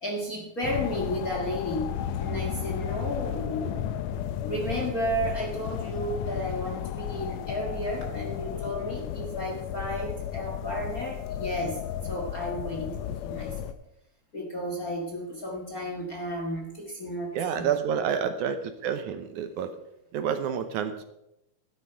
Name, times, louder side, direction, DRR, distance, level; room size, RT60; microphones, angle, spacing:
voice 1, 0.0-3.8 4.4-13.7 14.3-17.7, equal, 35° left, -1 dB, 1.5 m, -33 dB
sound 1, 0.6-13.7, left 10 dB, 85° left, 1.5 m, -33 dB
voice 2, 17.3-19.7 20.1-21.0, right 7 dB, 75° right, 9 dB, 2.1 m, -29 dB
13.0 x 10.5 x 4.5 m, 0.85 s
omnidirectional pair, 3.8 m